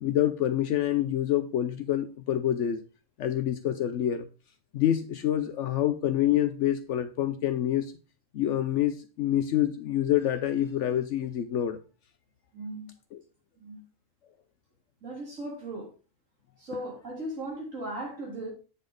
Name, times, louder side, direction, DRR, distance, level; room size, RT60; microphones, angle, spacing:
voice 1, 0.0-2.8 3.2-4.3 4.7-7.9 8.3-11.8, left 11 dB, 70° left, 0.9 m, -27 dB
voice 2, 12.5-12.9 13.6-13.8 15.0-15.9 16.6-18.5, right 1 dB, 85° right, 3.5 m, -37 dB
8.7 x 5.5 x 3.8 m
omnidirectional pair, 1.3 m